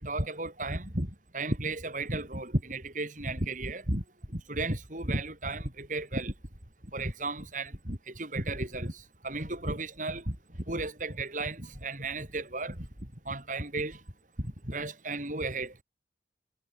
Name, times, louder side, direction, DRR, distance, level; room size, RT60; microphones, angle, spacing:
voice 1, 0.0-4.0 4.3-6.3 6.9-9.0 9.2-10.4 10.7-12.8 13.3-14.0 14.4-15.8, right 2 dB, 45° right, 5.9 m, -34 dB
head